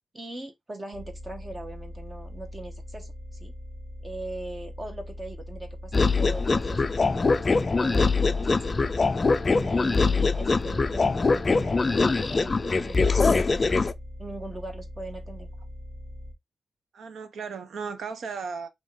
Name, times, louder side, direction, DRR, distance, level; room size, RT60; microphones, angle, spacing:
voice 1, 0.1-3.1 3.4-3.5 4.0-8.9 9.5-13.9 14.2-15.5, right 2 dB, 20° right, 1.0 m, -40 dB
sound 1, 0.9-16.3, left 1 dB, ahead, 1.2 m, -41 dB
sound 2, 5.9-13.9, left 4 dB, 25° left, 0.4 m, -23 dB
voice 2, 16.9-18.7, right 5 dB, 70° right, 0.8 m, -36 dB
5.2 x 2.7 x 3.6 m
wide cardioid pair, 165°, 0 cm